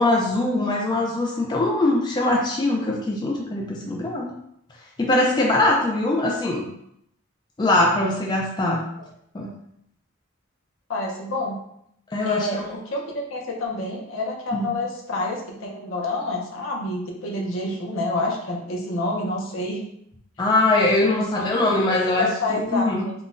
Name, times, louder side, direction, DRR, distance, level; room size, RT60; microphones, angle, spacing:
voice 1, 0.0-4.3 5.0-6.7 7.6-8.8 9.3-9.5 12.1-12.7 14.5-14.7 20.4-23.0, left 2 dB, 20° left, -1 dB, 0.3 m, -22 dB
voice 2, 10.9-11.6 12.2-19.8 21.1-21.5 21.9-23.1, left 2 dB, 75° left, 0 dB, 0.7 m, -28 dB
3.7 x 2.2 x 2.5 m, 0.73 s
head